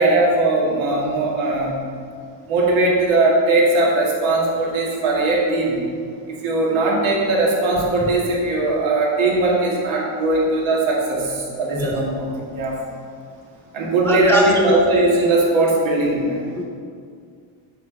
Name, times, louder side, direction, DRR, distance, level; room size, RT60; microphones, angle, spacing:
voice 1, 0.0-1.8 2.5-5.8 6.3-12.7 13.7-16.4, right 2 dB, 70° right, -3 dB, 2.3 m, -19 dB
voice 2, 14.0-14.8 16.6-16.7, equal, 5° left, -1 dB, 0.5 m, -21 dB
8.2 x 4.4 x 6.4 m, 2.2 s
cardioid pair, 140°, 50 cm